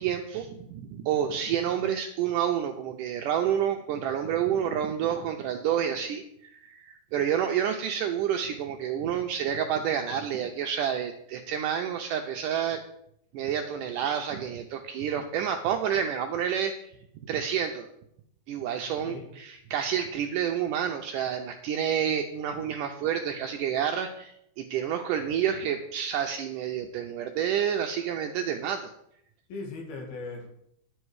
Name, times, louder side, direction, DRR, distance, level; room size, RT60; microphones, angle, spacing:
voice 1, 0.0-12.8 13.3-16.7 17.3-17.9 18.5-28.9, right 9 dB, 90° right, 4 dB, 1.9 m, -29 dB
voice 2, 18.9-19.3 29.5-30.5, left 3 dB, 75° left, 0 dB, 3.7 m, -38 dB
11.5 x 7.9 x 4.7 m, 0.75 s
omnidirectional pair, 4.4 m